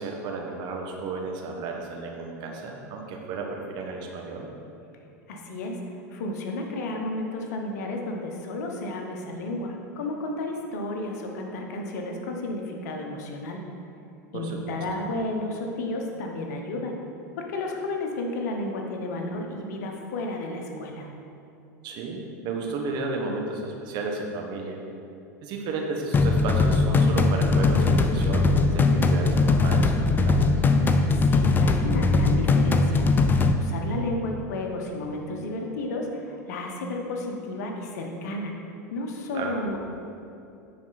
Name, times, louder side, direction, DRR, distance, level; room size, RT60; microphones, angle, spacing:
voice 1, 0.0-4.5 14.3-14.6 21.8-24.8 25.4-30.6 39.3-39.6, right 3 dB, 50° right, 1 dB, 1.2 m, -33 dB
voice 2, 5.3-5.8 6.1-13.6 14.3-16.9 17.3-21.1 31.1-33.1 33.5-38.6 38.9-39.8, left 2 dB, 70° left, 2 dB, 1.1 m, -32 dB
sound 1, 26.1-33.5, left 3 dB, 20° left, 0.5 m, -20 dB
9.7 x 4.3 x 4.1 m, 2.7 s
hypercardioid pair, 90°, 9 cm